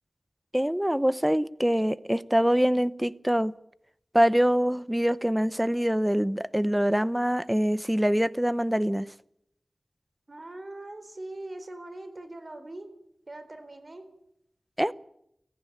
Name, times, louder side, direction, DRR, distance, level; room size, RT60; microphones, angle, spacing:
voice 1, 0.5-3.5 4.1-9.1 14.8-14.9, equal, 10° right, 18 dB, 0.8 m, -24 dB
voice 2, 10.3-12.9 13.3-14.1, right 2 dB, 50° right, 10 dB, 4.0 m, -41 dB
17.5 x 15.0 x 10.0 m, 0.76 s
cardioid pair, 40°, 0 cm